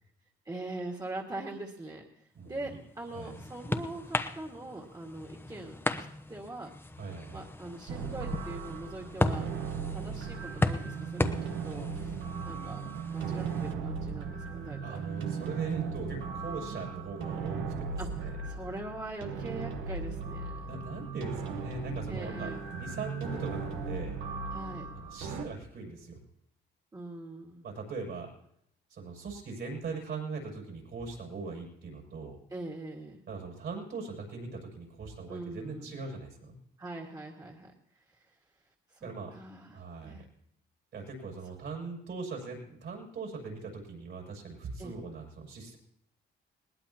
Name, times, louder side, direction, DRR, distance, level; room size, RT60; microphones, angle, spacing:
voice 1, 0.5-6.7 7.3-9.5 9.9-12.2 12.4-12.8 13.1-15.0 18.0-18.1 18.4-20.7 22.1-22.6 24.5-24.9 26.9-27.7 32.5-33.2 35.3-36.1 36.8-38.4 38.9-40.3 44.8-45.0, right 2 dB, 20° right, 0 dB, 2.0 m, -42 dB
sound 1, 2.6-13.7, left 2 dB, 10° left, 0.9 m, -36 dB
voice 2, 7.0-7.4 14.8-18.3 20.6-22.5 22.8-24.2 24.9-26.2 27.6-28.3 28.9-32.4 33.3-36.6 39.0-39.3 39.7-40.2 40.9-45.8, right 4 dB, 65° right, 1 dB, 7.0 m, -40 dB
sound 2, 7.9-25.4, right 5 dB, 90° right, 1.3 m, -37 dB
20.5 x 19.0 x 2.9 m, 0.73 s
cardioid pair, 90°, 20 cm